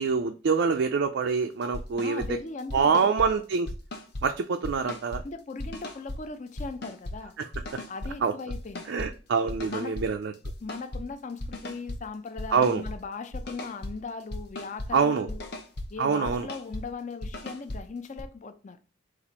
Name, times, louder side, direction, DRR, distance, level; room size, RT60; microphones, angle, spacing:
voice 1, 0.0-2.2 2.7-3.7 4.2-5.2 7.4-7.5 8.2-8.3 8.9-10.3 12.5-12.8 14.9-15.3 16.0-16.5, right 5 dB, 65° right, 0.4 m, -25 dB
sound 1, 1.6-2.3 2.6-3.3 3.7-4.3 4.6-5.2 5.6-6.2 6.6-7.2 7.5-8.1 8.5-9.1 9.5-10.1 10.3-11.0 11.4-12.0 12.4-13.0 13.3-13.9 14.3-14.9 15.3-15.9 16.1-16.8 17.2-17.8 18.2-18.3, left 1 dB, 55° left, 0.8 m, -36 dB
voice 2, 2.0-3.1 5.2-7.3 7.9-8.9 9.7-10.0 10.6-15.5 15.9-18.8, left 4 dB, 40° left, 0.5 m, -38 dB
4.2 x 2.5 x 4.2 m
head